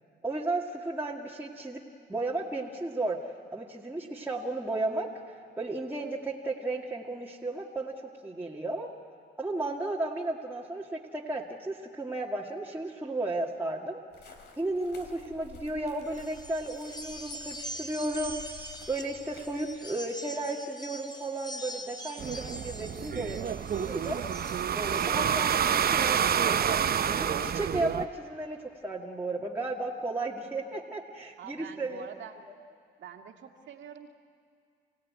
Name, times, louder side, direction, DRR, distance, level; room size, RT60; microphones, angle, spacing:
voice 1, 0.2-1.8 2.1-3.2 3.5-7.9 8.2-8.9 9.4-14.0 14.6-18.6 18.9-24.2 24.7-32.1 32.5-32.6, right 2 dB, 10° right, -4 dB, 2.0 m, -34 dB
sound 1, 14.1-19.8, left 4 dB, 60° left, 3.3 m, -52 dB
sound 2, 16.1-25.5, equal, 20° left, 2.3 m, -43 dB
sound 3, 22.2-28.1, right 8 dB, 50° right, 0.8 m, -28 dB
voice 2, 31.4-32.4 33.0-34.1, right 8 dB, 70° right, 3 dB, 2.2 m, -45 dB
29.0 x 16.5 x 9.5 m, 2.2 s
cardioid pair, 90°, 20 cm